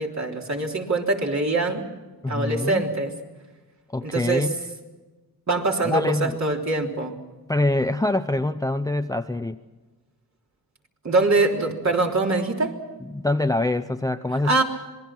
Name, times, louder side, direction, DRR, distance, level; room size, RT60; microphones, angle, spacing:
voice 1, 0.0-1.8 2.3-3.1 4.0-4.5 5.5-7.1 11.0-12.8 14.4-14.6, right 2 dB, 45° right, 0 dB, 3.5 m, -23 dB
voice 2, 2.2-2.8 3.9-4.5 5.8-6.4 7.5-9.6 13.0-14.6, left 2 dB, 10° left, 10 dB, 0.6 m, -25 dB
26.5 x 20.5 x 6.0 m, 1.2 s
cardioid pair, 85°, 38 cm